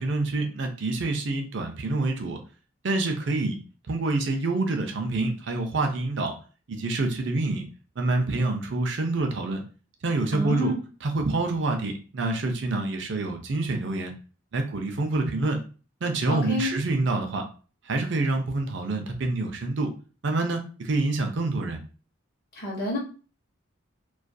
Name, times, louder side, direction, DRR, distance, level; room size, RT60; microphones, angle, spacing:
voice 1, 0.0-2.4 2.8-3.6 3.9-6.3 6.7-7.7 8.0-9.6 10.0-10.7 11.0-14.1 14.5-15.6 16.0-17.5 17.9-19.9 20.2-21.8, right 2 dB, 55° right, 4 dB, 0.5 m, -27 dB
voice 2, 10.3-10.8 16.3-16.7 22.5-23.0, equal, 45° left, -2 dB, 0.7 m, -28 dB
2.3 x 2.2 x 2.5 m, 0.37 s
head